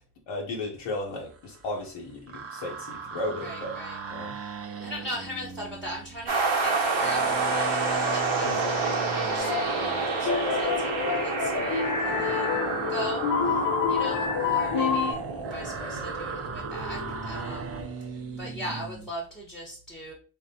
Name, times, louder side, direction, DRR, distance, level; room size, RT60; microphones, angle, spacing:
voice 1, 0.3-3.7 4.1-4.3 8.4-8.6, left 2 dB, 85° left, -2 dB, 0.8 m, -34 dB
sound 1, 1.3-1.9 2.1-19.1, right 4 dB, 35° right, 0.4 m, -39 dB
voice 2, 3.4-4.0 4.4-13.6 13.9-17.7 18.1-20.1, equal, ahead, -3 dB, 0.8 m, -39 dB
sound 2, 6.3-17.9, right 3 dB, 75° right, 0.9 m, -29 dB
sound 3, 9.4-9.8 10.2-15.1, left 7 dB, 45° left, 0.5 m, -28 dB
3.4 x 2.1 x 2.6 m, 0.38 s
cardioid pair, 95°, 47 cm